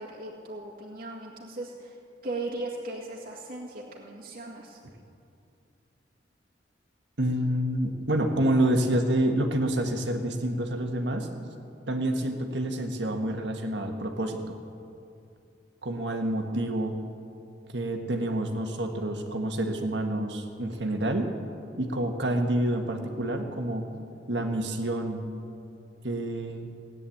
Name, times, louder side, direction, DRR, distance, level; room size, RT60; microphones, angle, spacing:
voice 1, 0.0-2.0 2.2-4.8, right 2 dB, 50° right, -5 dB, 1.9 m, -37 dB
voice 2, 7.2-11.3 11.9-14.6 15.8-17.0 17.7-21.3 21.7-23.9 24.3-25.2 26.0-26.7, right 1 dB, 75° right, 4 dB, 1.6 m, -28 dB
17.0 x 9.7 x 8.6 m, 2.6 s
head